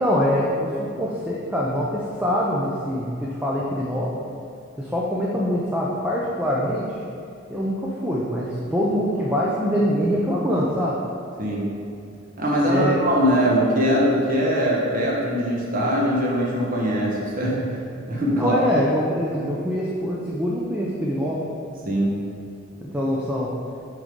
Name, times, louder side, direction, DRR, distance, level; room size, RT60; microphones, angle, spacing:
voice 1, 0.0-4.1 4.8-6.9 7.5-11.0 12.6-13.1 18.4-21.4 22.8-23.5, equal, 10° right, -5 dB, 0.6 m, -24 dB
voice 2, 12.4-17.6 18.1-18.6 21.8-22.1, equal, 40° right, -4 dB, 1.3 m, -21 dB
6.2 x 3.9 x 5.2 m, 2.5 s
head